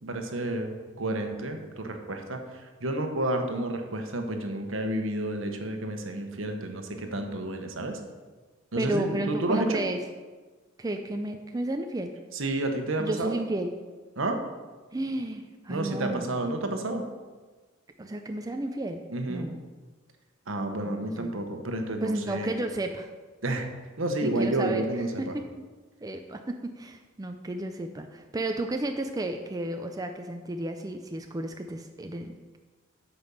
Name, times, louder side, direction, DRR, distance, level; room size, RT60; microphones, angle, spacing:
voice 1, 0.0-2.4 2.8-8.0 8.7-9.8 12.3-13.4 14.2-14.4 15.7-17.0 19.1-19.5 20.5-22.5 23.4-23.7 24.0-25.3, right 1 dB, 70° right, 5 dB, 1.2 m, -30 dB
voice 2, 8.8-10.0 10.8-12.1 13.0-13.7 14.9-16.3 18.0-19.0 19.3-19.6 20.8-21.4 22.0-23.1 24.2-24.8 25.2-25.6 26.0-32.6, right 2 dB, 20° right, 5 dB, 0.4 m, -32 dB
8.8 x 5.3 x 7.0 m, 1.3 s
head